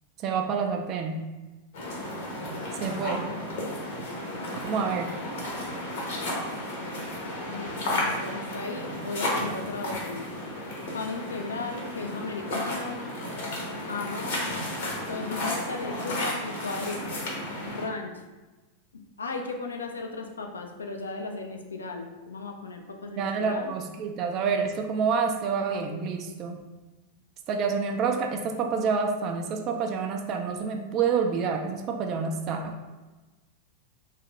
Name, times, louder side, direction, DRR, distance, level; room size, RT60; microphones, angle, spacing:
voice 1, 0.2-1.2 2.8-3.3 4.6-5.1 23.2-26.6 27.5-32.7, right 5 dB, 35° right, 3 dB, 0.4 m, -28 dB
sound 1, 1.7-17.9, left 1 dB, 55° left, 0.7 m, -33 dB
voice 2, 7.5-10.2 10.9-13.0 13.8-14.5 15.1-17.2 17.7-18.2 18.9-23.7, left 3 dB, 75° left, 3 dB, 0.3 m, -36 dB
2.8 x 2.4 x 2.9 m, 1.2 s
figure-of-eight pair, 90°, 0 cm